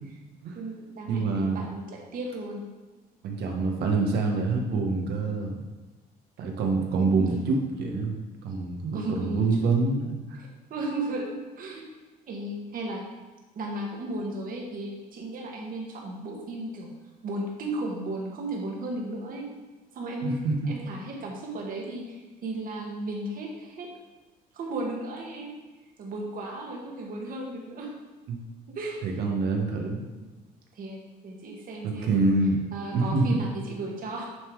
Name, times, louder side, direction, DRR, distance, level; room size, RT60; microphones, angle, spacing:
voice 1, 0.5-2.6 7.0-7.4 8.9-9.4 10.7-11.8 12.3-13.0 13.6-16.9 17.2-19.5 19.9-23.9 24.5-25.6 26.0-27.9 28.7-29.0 30.2-30.3 30.7-31.0 31.2-32.3 32.7-34.3, right 2 dB, 55° right, -1 dB, 1.8 m, -35 dB
voice 2, 1.1-1.6 3.2-5.6 6.4-8.1 8.4-10.4 20.2-20.7 28.3-28.4 29.0-30.0 31.8-32.6 32.9-33.4, right 3 dB, 75° right, 2 dB, 1.4 m, -26 dB
9.6 x 3.8 x 4.7 m, 1.2 s
cardioid pair, 110°, 17 cm